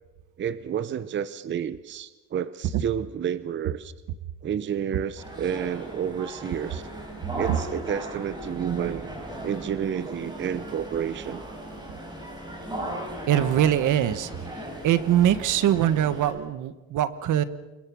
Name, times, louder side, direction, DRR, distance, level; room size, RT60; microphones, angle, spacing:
voice 1, 0.4-3.9 4.4-6.8 7.3-9.1 9.4-11.4, right 9 dB, 35° right, 15 dB, 0.7 m, -30 dB
sound 1, 5.2-16.3, right 1 dB, 15° right, 5.2 m, -37 dB
voice 2, 13.3-14.3 14.8-17.4, right 11 dB, 75° right, 14 dB, 1.3 m, -22 dB
28.0 x 22.0 x 6.2 m, 1.2 s
cardioid pair, 160°, 31 cm